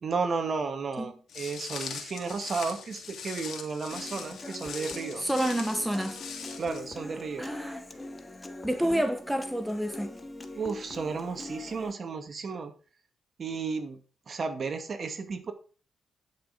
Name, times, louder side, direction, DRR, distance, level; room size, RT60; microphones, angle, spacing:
voice 1, 0.0-5.3 6.6-7.5 8.8-9.1 10.6-12.7 13.4-14.0 14.3-15.5, right 4 dB, 55° right, 2.3 m, -33 dB
Walk footsteps, 1.3-6.8, left 6 dB, 70° left, 2.9 m, -41 dB
Human voice / Acoustic guitar, 3.9-11.9, left 2 dB, 20° left, 1.7 m, -43 dB
voice 2, 5.2-6.2 7.4-7.8 8.6-10.2, right 1 dB, 5° right, 1.4 m, -29 dB
11.0 x 6.6 x 5.1 m
supercardioid pair, 60°, 0 cm